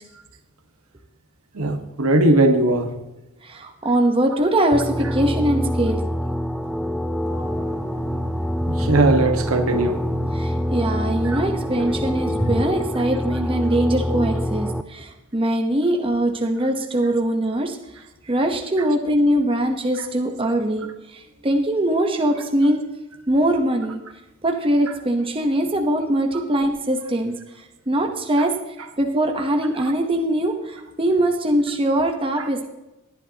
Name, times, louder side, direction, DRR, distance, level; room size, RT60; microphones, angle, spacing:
voice 1, 1.5-2.9 5.0-5.1 7.7-7.9 8.7-10.0 11.2-11.4 18.8-18.9 20.0-20.1 24.9-25.0 26.3-26.4 28.4-28.5 29.8-29.9 32.4-32.5, right 2 dB, 75° right, 5 dB, 1.4 m, -20 dB
voice 2, 3.4-6.0 10.3-17.8 18.2-22.8 23.3-24.0 24.4-28.5 29.0-32.7, right 1 dB, 25° right, 4 dB, 1.0 m, -22 dB
sound 1, 4.7-14.8, equal, ahead, 0.4 m, -25 dB
sound 2, 7.2-12.9, right 1 dB, 15° left, 3.3 m, -33 dB
18.5 x 10.5 x 2.9 m, 1.0 s
head